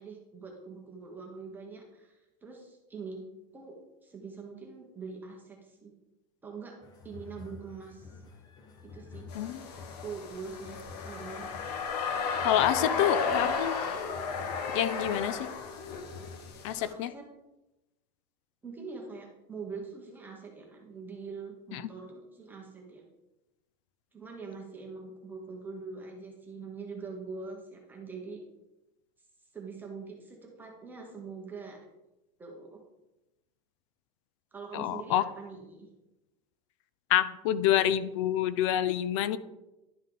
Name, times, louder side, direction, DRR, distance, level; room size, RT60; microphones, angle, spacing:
voice 1, 0.0-3.2 3.5-5.9 6.4-6.8 7.0-8.2 8.8-9.3 10.0-11.5 12.7-13.4 15.1-15.3 16.7-17.2 18.6-23.0 24.1-28.4 29.5-31.8 32.4-32.8 34.5-35.9, right 4 dB, 10° right, -1 dB, 1.0 m, -43 dB
sound 1, 6.8-16.7, left 4 dB, 20° left, 0.7 m, -49 dB
sound 2, 9.3-16.9, left 5 dB, 75° left, 1.2 m, -34 dB
voice 2, 12.4-13.7 14.7-15.4 16.6-17.1 21.7-21.8 34.7-35.2 37.1-39.4, left 11 dB, 50° left, 15 dB, 0.5 m, -27 dB
11.0 x 5.4 x 3.8 m, 0.97 s
supercardioid pair, 175°, 21 cm